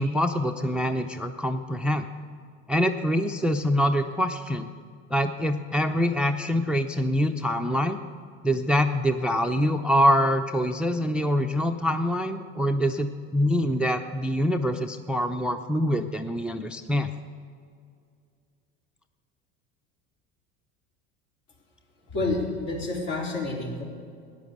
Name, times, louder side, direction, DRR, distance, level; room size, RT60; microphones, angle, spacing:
voice 1, 0.0-2.1 2.7-4.7 5.1-8.0 8.4-17.1, equal, 5° right, 9 dB, 0.4 m, -25 dB
voice 2, 22.1-23.8, left 2 dB, 60° left, -2 dB, 3.8 m, -29 dB
14.5 x 10.0 x 6.6 m, 2.3 s
hypercardioid pair, 75°, 39 cm